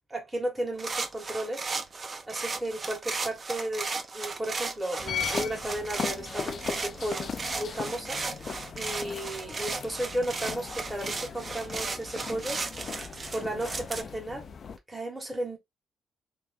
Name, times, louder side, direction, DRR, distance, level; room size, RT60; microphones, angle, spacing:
voice 1, 0.1-1.7 2.2-12.6 13.3-14.5 14.9-15.6, right 1 dB, 15° right, 1.3 m, -34 dB
sound 1, 0.8-14.0, right 4 dB, 35° right, 0.5 m, -35 dB
sound 2, 5.0-14.8, left 7 dB, 50° left, 0.4 m, -38 dB
2.8 x 2.6 x 3.5 m
cardioid pair, 90°, 0 cm